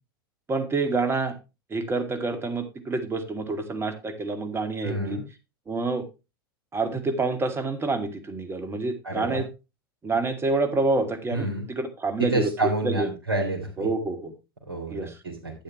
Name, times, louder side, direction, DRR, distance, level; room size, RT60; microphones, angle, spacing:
voice 1, 0.5-1.4 1.7-5.2 5.7-6.0 6.7-9.5 10.0-12.5 12.8-13.1 13.8-14.3 14.9-15.2, right 3 dB, 20° right, 7 dB, 2.3 m, -27 dB
voice 2, 4.8-5.2 9.0-9.4 11.3-11.6 12.2-13.9 14.7-15.5, right 2 dB, 75° right, -2 dB, 2.9 m, -28 dB
12.0 x 8.5 x 3.1 m, 0.27 s
figure-of-eight pair, 85°, 12 cm